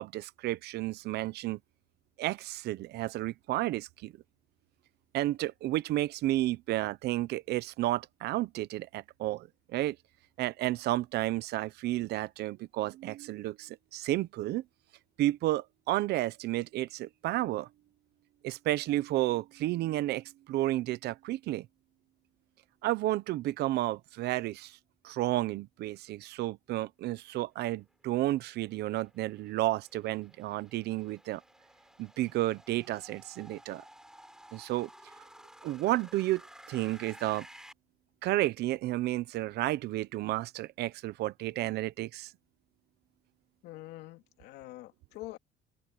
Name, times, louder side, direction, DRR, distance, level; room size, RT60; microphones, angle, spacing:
voice 1, 0.0-1.6 2.2-4.1 5.1-10.0 10.4-14.6 15.2-17.7 18.4-21.7 22.8-24.8 25.0-31.4 32.0-33.8 34.5-34.9 35.6-36.4 36.7-37.5 38.2-42.3, right 16 dB, 80° right, 0.9 m, -32 dB
sound 1, 28.5-37.7, right 1 dB, 5° right, 7.3 m, -54 dB
voice 2, 43.6-45.4, left 17 dB, 90° left, 2.7 m, -45 dB
cardioid pair, 110°, 17 cm